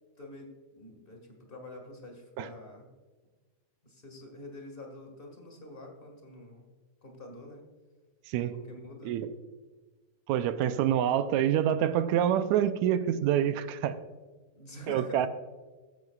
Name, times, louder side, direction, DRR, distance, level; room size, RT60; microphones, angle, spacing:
voice 1, 0.2-2.9 3.8-6.7 7.0-7.7 8.5-9.2 14.5-15.3, left 1 dB, 25° left, 3 dB, 1.4 m, -47 dB
voice 2, 10.3-13.9 14.9-15.3, right 10 dB, 80° right, 11 dB, 1.8 m, -26 dB
15.0 x 13.5 x 2.4 m, 1.3 s
omnidirectional pair, 3.6 m